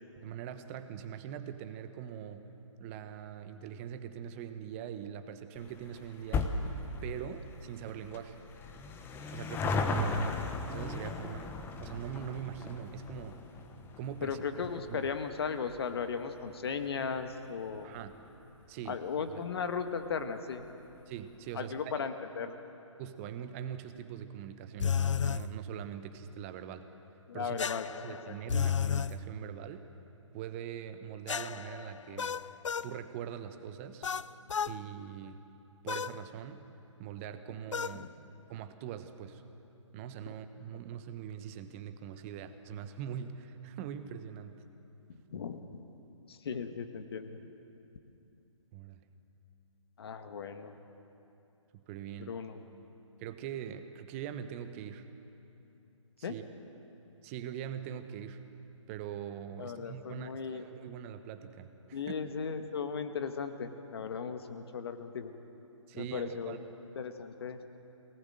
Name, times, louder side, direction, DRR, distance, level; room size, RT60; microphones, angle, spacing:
voice 1, 0.2-2.5 2.8-6.5 7.0-8.4 9.3-13.4 14.0-14.4 14.9-15.0 17.8-18.1 18.7-19.4 21.1-21.9 23.0-26.9 27.3-27.6 28.0-29.9 30.3-32.4 32.8-34.0 34.6-35.4 35.8-36.7 37.0-38.2 38.5-39.4 39.9-44.6 48.7-49.0 51.7-52.4 53.2-55.1 56.2-56.4 57.2-58.4 58.9-62.0 65.9-66.6, right 9 dB, 25° right, 9 dB, 1.1 m, -42 dB
sound 1, 5.6-18.3 18.6-18.7 19.6-19.7 19.9-20.0 20.2-20.3, left 3 dB, 10° left, 1.1 m, -37 dB
voice 2, 14.2-17.9 18.9-20.6 21.5-22.6 27.3-28.2 38.0-38.1 45.3-45.6 46.3-47.4 50.0-50.7 52.2-52.6 56.2-56.3 59.6-60.6 61.9-65.3 65.9-66.5 66.9-67.6, left 6 dB, 50° left, 8 dB, 1.7 m, -36 dB
sound 2, 24.8-25.4 27.6-29.1 31.3-32.9 34.0-34.8 35.9-36.2 37.7-38.0, left 7 dB, 65° left, 0.6 m, -32 dB
22.5 x 19.0 x 7.8 m, 3.0 s
figure-of-eight pair, 135°, 17 cm